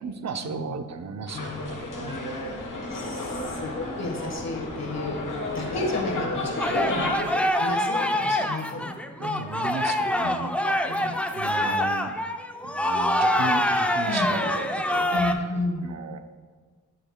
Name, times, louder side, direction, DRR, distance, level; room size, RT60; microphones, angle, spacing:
voice 1, 0.0-2.8 3.3-3.8 6.4-7.5 9.2-12.2 12.6-16.2, right 5 dB, 55° right, 8 dB, 0.5 m, -36 dB
sound 1, 1.3-7.2, left 2 dB, 75° left, 1.0 m, -32 dB
voice 2, 2.9-5.3 5.5-7.3 7.6-8.9 9.2-9.4 10.2-10.3 10.9-11.2 14.1-14.3 15.1-15.9, left 2 dB, 55° left, 1 dB, 1.3 m, -32 dB
sound 2, 6.6-15.3, left 1 dB, 5° left, 0.4 m, -25 dB
7.7 x 6.3 x 2.2 m, 1.5 s
cardioid pair, 60°, 32 cm